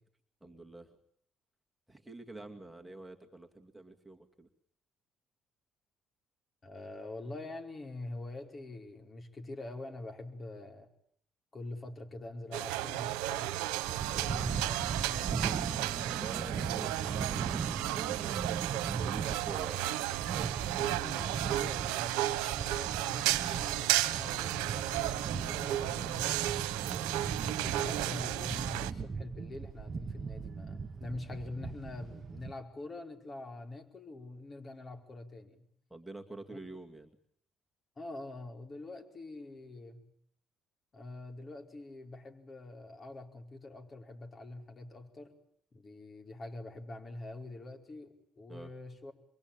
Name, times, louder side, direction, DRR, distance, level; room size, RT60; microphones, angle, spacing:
voice 1, 0.4-1.0 1.9-4.5 14.1-14.3 16.0-18.4 19.0-20.0 35.9-37.1 48.5-48.7, right 2 dB, 5° right, 3 dB, 2.4 m, -48 dB
voice 2, 6.6-10.9 11.5-13.6 14.2-15.8 16.5-16.9 21.0-35.7 36.5-36.7 38.0-40.0 40.9-45.4 45.7-49.1, left 2 dB, 35° left, 5 dB, 5.0 m, -45 dB
sound 1, 12.5-28.9, right 15 dB, 90° right, 1.1 m, -33 dB
sound 2, 13.8-32.5, right 5 dB, 45° right, 1.4 m, -39 dB
26.5 x 23.0 x 8.9 m, 0.67 s
supercardioid pair, 75°, 0 cm